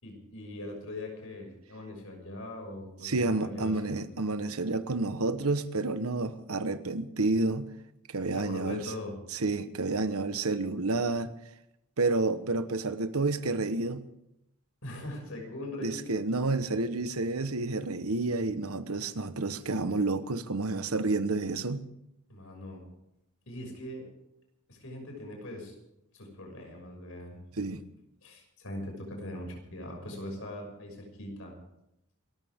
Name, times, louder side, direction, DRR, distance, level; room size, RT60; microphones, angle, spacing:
voice 1, 0.0-4.0 8.3-9.2 14.8-16.2 22.3-22.9 23.5-24.1 24.7-25.8 26.1-27.4 28.2-31.6, left 1 dB, 70° left, 6.4 m, -41 dB
voice 2, 3.0-7.7 8.1-8.9 9.3-11.3 12.0-14.0 15.8-21.8 27.6-27.8, right 3 dB, 80° right, 1.2 m, -30 dB
27.5 x 14.5 x 3.7 m
head